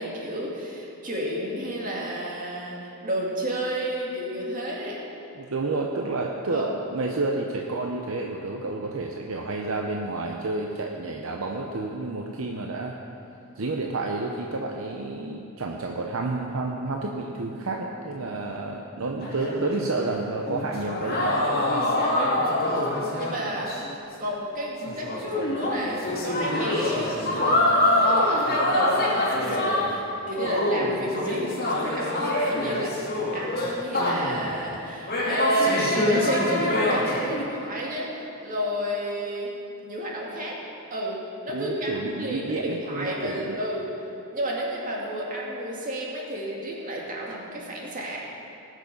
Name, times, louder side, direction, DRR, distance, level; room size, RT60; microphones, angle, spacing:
voice 1, 0.0-5.0 6.5-6.7 22.7-22.9 23.1-23.7 24.1-39.5 39.8-40.6 40.9-41.2 41.4-43.9 44.3-48.2, right 1 dB, 40° right, -3 dB, 2.2 m, -31 dB
voice 2, 5.4-13.0 13.6-21.4 41.5-43.6, right 3 dB, 65° right, 1 dB, 0.7 m, -30 dB
sound 1, 19.2-23.9 24.2-24.4 24.8-30.0 30.3-34.5 35.1-37.4, left 1 dB, 45° left, 2.6 m, -25 dB
18.5 x 6.5 x 5.4 m, 2.7 s
head